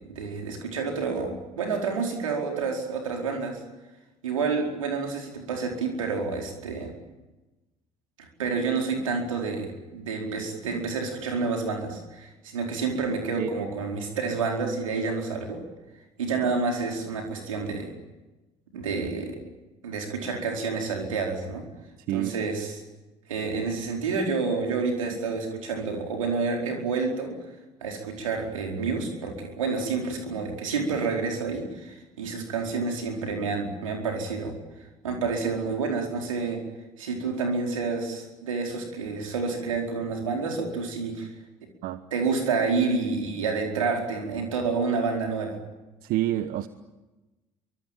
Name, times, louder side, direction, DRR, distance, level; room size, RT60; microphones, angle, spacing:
voice 1, 0.1-3.6 4.2-6.9 8.4-15.6 16.2-17.9 18.7-19.4 19.8-21.6 22.1-22.7 23.3-27.4 27.8-34.5 35.0-36.6 37.0-41.3 42.1-45.6, right 4 dB, 85° right, 2 dB, 4.7 m, -29 dB
voice 2, 46.0-46.7, right 14 dB, 60° right, 12 dB, 1.2 m, -28 dB
25.5 x 24.5 x 9.2 m, 1.1 s
hypercardioid pair, 60°, 17 cm